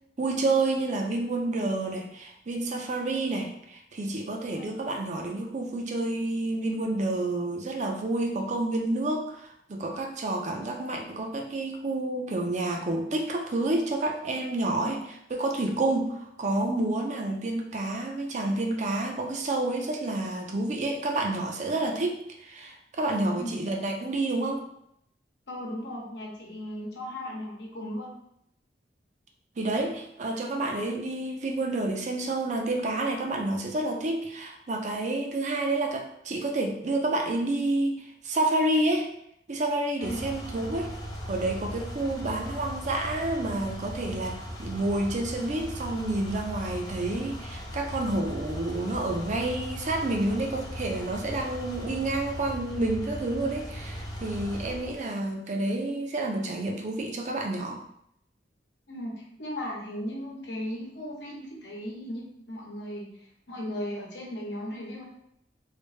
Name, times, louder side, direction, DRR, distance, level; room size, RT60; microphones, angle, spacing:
voice 1, 0.2-15.0 15.3-24.6 29.6-39.1 39.5-40.9 41.3-57.8, right 2 dB, 45° right, 3 dB, 0.5 m, -29 dB
voice 2, 25.5-28.1 40.0-40.2 42.0-42.3 51.8-51.9 58.9-65.0, equal, 75° left, -2 dB, 0.9 m, -37 dB
sound 1, 40.0-55.1, equal, 25° left, 0.6 m, -38 dB
3.3 x 2.6 x 3.1 m, 0.75 s
head